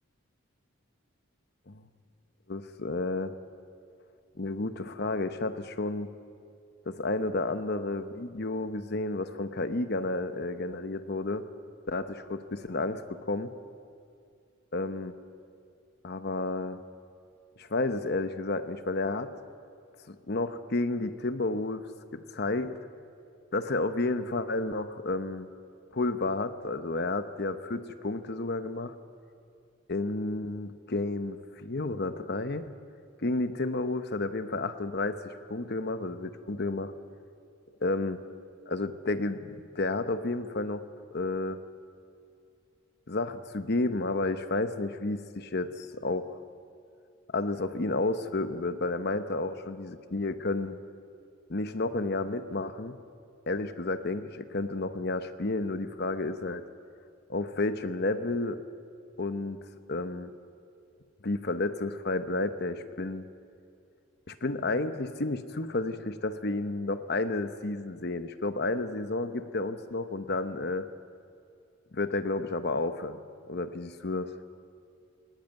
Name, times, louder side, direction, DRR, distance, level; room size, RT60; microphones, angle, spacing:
voice 1, 2.5-3.3 4.4-6.1 6.9-11.4 11.9-13.5 14.7-15.1 16.0-16.8 17.6-19.3 20.1-21.9 22.1-22.7 23.5-25.5 25.9-28.9 29.9-32.7 33.2-36.9 37.8-38.2 38.7-40.8 41.1-41.6 43.1-46.4 47.3-50.8 51.5-52.9 53.5-56.7 57.3-58.6 59.2-59.6 59.9-60.3 61.2-63.2 64.3-70.9 71.9-73.2 73.5-74.3, left 2 dB, 50° left, 10 dB, 0.9 m, -31 dB
19.5 x 16.5 x 9.3 m, 2.4 s
head